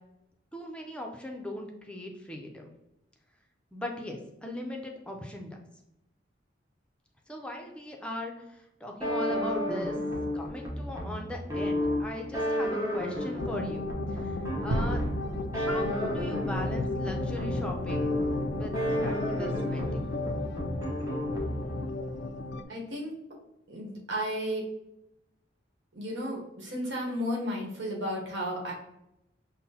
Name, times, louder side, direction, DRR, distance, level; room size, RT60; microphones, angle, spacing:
voice 1, 0.5-2.7 3.7-5.6 7.3-10.0 10.3-15.0 15.5-18.2 18.6-18.7 19.0-20.0, left 1 dB, 5° left, 1 dB, 0.5 m, -39 dB
sound 1, 9.0-21.9, equal, 20° right, 0.8 m, -32 dB
sound 2, 13.4-22.6, left 2 dB, 65° left, 0.3 m, -34 dB
sound 3, 14.7-17.3, right 1 dB, 55° right, 0.4 m, -34 dB
voice 2, 22.7-23.1 23.7-24.6 25.9-28.7, equal, 75° right, -1 dB, 1.0 m, -33 dB
5.6 x 2.1 x 2.8 m, 0.85 s
head